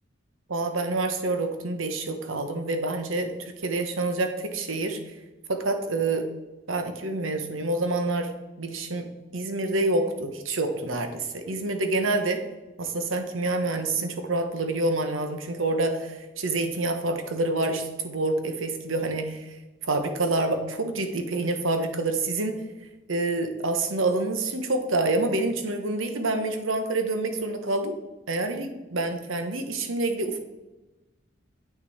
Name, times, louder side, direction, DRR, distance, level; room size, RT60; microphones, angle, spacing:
voice 1, 0.5-5.0 5.5-6.3 6.7-8.3 8.6-12.4 12.8-19.6 19.8-22.6 23.1-27.9 28.3-30.4, right 2 dB, 90° right, 7 dB, 1.1 m, -27 dB
8.6 x 6.0 x 4.2 m, 1.1 s
head